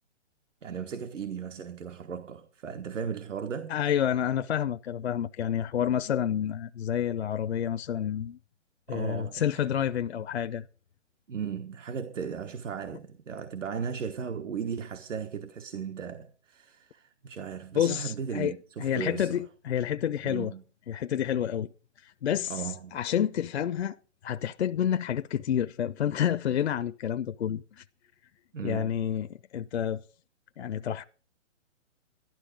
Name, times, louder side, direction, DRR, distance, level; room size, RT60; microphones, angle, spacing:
voice 1, 0.6-3.7 8.9-9.6 11.3-19.4 20.2-20.6 22.5-23.0 28.5-29.0, right 7 dB, 80° right, 1.3 m, -36 dB
voice 2, 3.7-8.4 8.9-10.6 17.7-18.5 18.8-20.5 20.9-21.7 22.0-24.0 24.2-27.8 28.6-30.0 30.6-31.0, left 9 dB, 60° left, 0.5 m, -29 dB
12.0 x 12.0 x 5.0 m
hypercardioid pair, 170°, 37 cm